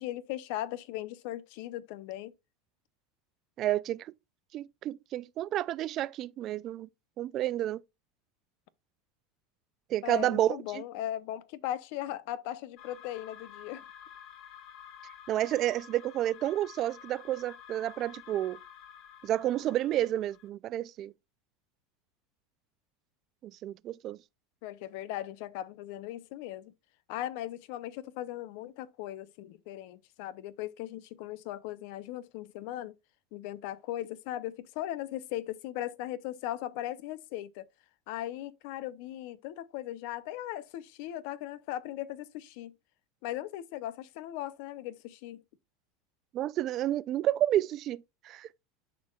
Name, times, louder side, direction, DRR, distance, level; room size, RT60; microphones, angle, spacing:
voice 1, 0.0-2.3 10.0-13.8 24.6-26.7 27.1-32.9 33.3-37.7 38.1-42.7 43.2-45.4, left 13 dB, 65° left, 0.7 m, -38 dB
voice 2, 3.6-4.1 4.5-6.9 7.2-7.8 9.9-10.8 15.3-18.6 19.2-21.1 23.4-24.2 46.3-48.5, right 13 dB, 40° right, 0.4 m, -30 dB
sound 1, 12.8-20.5, left 9 dB, 50° left, 1.0 m, -51 dB
11.0 x 4.5 x 2.3 m
supercardioid pair, 130°, 0 cm